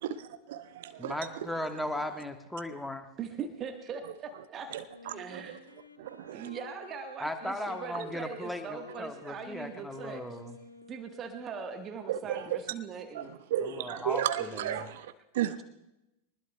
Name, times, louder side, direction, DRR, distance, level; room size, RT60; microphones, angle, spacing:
voice 1, 0.0-1.3 4.7-4.8 6.4-6.5 12.1-12.6 13.1-15.6, right 11 dB, 55° right, 0.9 m, -33 dB
voice 2, 1.0-3.1 7.2-10.6 13.6-14.9, left 1 dB, 5° left, 1.3 m, -37 dB
voice 3, 3.2-4.8 5.1-5.5 6.3-10.2 10.9-13.4, right 6 dB, 30° right, 1.3 m, -41 dB
Wind instrument woodwind instrument, 4.9-11.5, left 3 dB, 85° left, 1.8 m, -52 dB
24.0 x 20.0 x 2.2 m
figure-of-eight pair, 90°, 0 cm